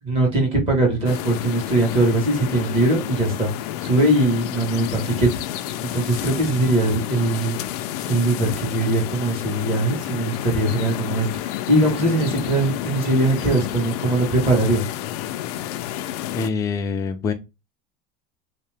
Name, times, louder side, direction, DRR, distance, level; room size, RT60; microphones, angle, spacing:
voice 1, 0.0-5.3 5.8-7.6 8.1-14.9, right 2 dB, 30° right, 1 dB, 1.4 m, -21 dB
sound 1, 1.0-16.5, left 12 dB, 75° left, 0.4 m, -30 dB
voice 2, 16.3-17.3, left 4 dB, 15° left, 6 dB, 0.4 m, -25 dB
3.6 x 2.8 x 3.3 m, 0.25 s
cardioid pair, 175°, 20 cm